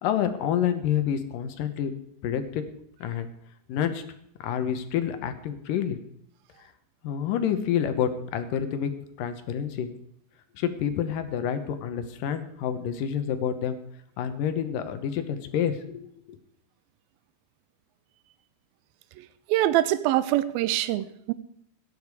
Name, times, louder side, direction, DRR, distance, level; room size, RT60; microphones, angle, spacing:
voice 1, 0.0-2.6 3.0-3.3 3.7-4.0 4.4-6.0 7.0-8.9 9.2-9.9 10.6-13.8 14.2-16.4, left 9 dB, 70° left, 2.5 m, -28 dB
voice 2, 19.5-21.3, right 14 dB, 80° right, 2.4 m, -24 dB
15.5 x 10.0 x 4.8 m
omnidirectional pair, 4.5 m